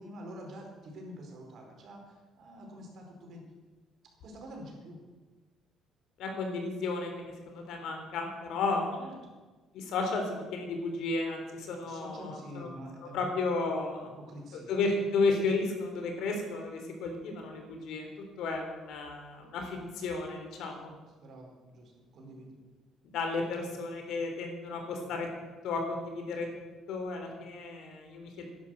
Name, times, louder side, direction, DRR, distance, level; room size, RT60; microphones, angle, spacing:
voice 1, 0.0-3.4 4.2-5.0 8.9-9.4 11.8-13.3 14.2-14.7 21.2-22.6, equal, 55° right, 0 dB, 4.8 m, -47 dB
voice 2, 6.2-9.0 9.7-12.7 13.1-14.1 14.5-18.1 18.4-20.9 23.0-28.5, left 3 dB, 75° left, 3 dB, 3.6 m, -33 dB
11.5 x 11.0 x 7.8 m, 1.3 s
cardioid pair, 115°, 0 cm